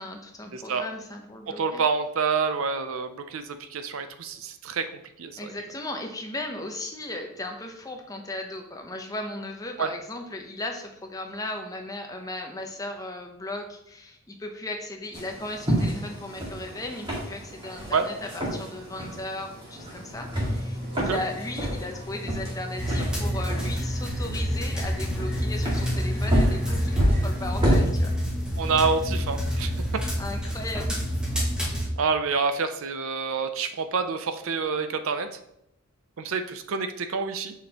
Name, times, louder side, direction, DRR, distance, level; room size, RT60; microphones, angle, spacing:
voice 1, 0.0-1.8 5.4-28.1 30.2-31.0 31.4-31.6, left 2 dB, 15° left, 3 dB, 0.7 m, -36 dB
voice 2, 0.5-0.8 1.5-4.9 5.2-5.5 9.8-9.9 17.9-18.1 20.9-21.2 28.6-29.7 32.0-35.3 36.2-37.5, right 5 dB, 65° right, 9 dB, 0.5 m, -27 dB
sound 1, 15.1-27.9, equal, 20° right, 1.8 m, -29 dB
sound 2, 20.1-30.6, equal, 65° left, 1.2 m, -36 dB
sound 3, 22.8-31.9, equal, 5° right, 1.1 m, -28 dB
6.5 x 5.1 x 2.9 m, 0.80 s
head